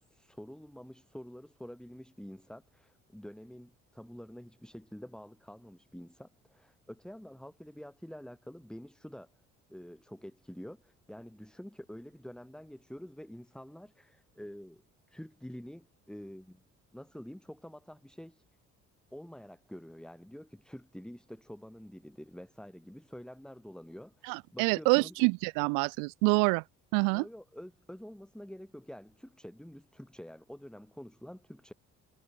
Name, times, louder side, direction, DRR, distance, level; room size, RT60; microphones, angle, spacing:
voice 1, 0.0-9.3 9.7-14.8 15.1-16.6 16.9-18.4 19.1-25.2 27.1-31.7, equal, ahead, 7.3 m, -48 dB
voice 2, 24.3-26.6 26.9-27.2, right 35 dB, 85° right, 0.6 m, -26 dB
supercardioid pair, 75°, 31 cm